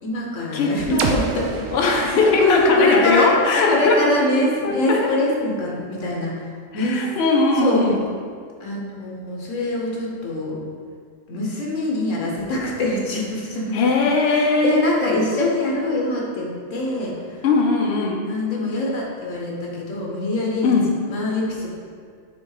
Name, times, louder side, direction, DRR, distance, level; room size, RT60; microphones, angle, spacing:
voice 1, 0.0-3.3 3.7-7.1 7.6-7.8 8.6-10.6 11.3-13.8 14.3-17.4 18.2-20.7 21.1-21.7, left 2 dB, 75° left, -3 dB, 1.5 m, -24 dB
voice 2, 0.5-1.2 1.7-4.0 4.6-5.1 6.7-8.0 13.7-14.8 17.4-18.3 20.6-20.9, left 3 dB, 60° left, 1 dB, 0.9 m, -19 dB
sound 1, 1.0-4.8, right 4 dB, 85° right, 1.0 m, -31 dB
5.9 x 3.6 x 4.8 m, 2.1 s
omnidirectional pair, 1.3 m